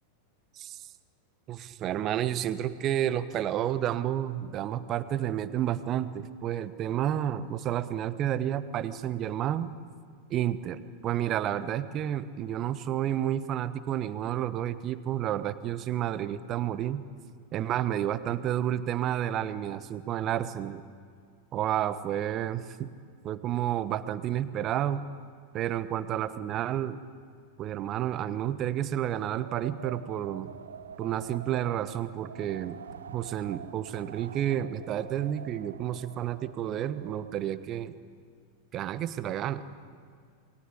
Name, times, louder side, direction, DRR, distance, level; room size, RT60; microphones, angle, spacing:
voice 1, 1.5-9.7 10.3-17.0 17.5-20.8 21.5-22.9 23.2-25.0 25.5-27.0 27.6-30.5 31.0-32.8 33.1-37.9 38.7-39.6, right 11 dB, 35° right, 13 dB, 1.2 m, -30 dB
Wind, 29.1-37.5, right 7 dB, 65° right, 0.8 m, -46 dB
28.0 x 21.5 x 8.5 m, 2.1 s
figure-of-eight pair, 90°, 0 cm